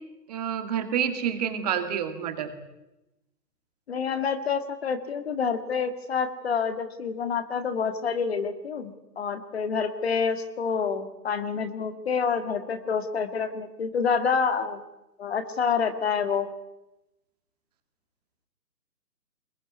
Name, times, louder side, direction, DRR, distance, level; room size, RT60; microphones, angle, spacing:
voice 1, 0.3-2.5, right 8 dB, 25° right, 8 dB, 2.0 m, -28 dB
voice 2, 3.9-14.8 15.2-16.5, left 6 dB, 40° left, 10 dB, 2.0 m, -28 dB
22.0 x 21.5 x 9.5 m, 0.93 s
hypercardioid pair, 160°, 49 cm